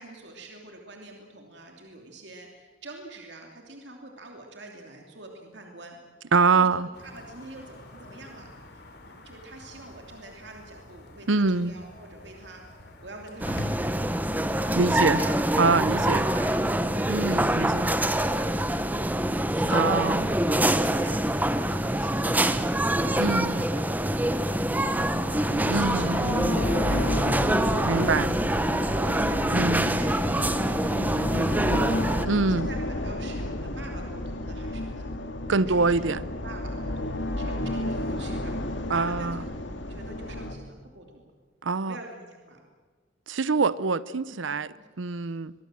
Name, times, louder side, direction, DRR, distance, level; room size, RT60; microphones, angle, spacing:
voice 1, 0.0-6.7 7.0-8.5 9.0-15.3 15.9-16.6 19.6-20.3 20.5-25.3 25.6-28.5 28.9-31.9 32.5-35.8 36.0-36.2 36.4-41.3 41.8-42.7 44.5-44.9 45.2-45.4, right 2 dB, 65° right, 1 dB, 2.9 m, -46 dB
voice 2, 6.3-6.9 11.3-11.8 14.7-15.2 15.6-16.3 17.1-17.9 19.7-20.3 23.2-23.6 25.7-26.3 27.8-28.3 29.5-30.0 32.2-32.7 35.5-36.3 38.9-39.4 41.6-42.0 43.3-44.7 45.0-45.5, right 4 dB, 85° right, 18 dB, 0.7 m, -24 dB
sound 1, 6.9-16.4, left 1 dB, 60° left, 3.7 m, -43 dB
sound 2, 13.4-32.3, right 1 dB, 10° right, 1.0 m, -25 dB
sound 3, 24.9-40.5, left 1 dB, 75° left, 2.2 m, -32 dB
23.5 x 23.5 x 7.6 m, 1.5 s
head